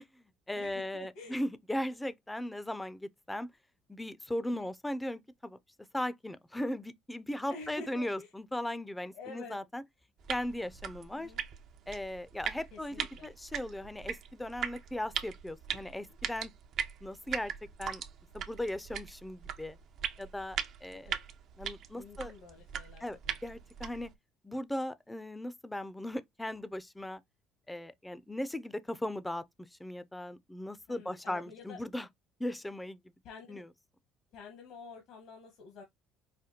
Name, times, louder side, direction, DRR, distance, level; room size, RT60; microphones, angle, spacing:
voice 1, 0.0-3.5 3.9-5.6 5.9-9.8 10.3-11.3 11.9-16.5 17.0-17.5 17.8-18.0 18.3-19.8 20.2-21.2 21.6-22.3 23.0-24.1 24.4-27.2 27.7-32.1 32.4-33.0 33.5-33.7, left 1 dB, 10° left, 0.5 m, -38 dB
voice 2, 0.5-1.4 4.5-4.7 7.5-8.3 9.1-9.6 11.1-11.4 12.7-13.3 21.0-21.1 21.9-23.3 30.9-31.8 33.2-33.6 34.3-35.8, left 4 dB, 70° left, 1.2 m, -49 dB
sound 1, 10.2-24.1, right 8 dB, 60° right, 0.6 m, -40 dB
4.9 x 2.2 x 2.9 m
supercardioid pair, 80°, 0 cm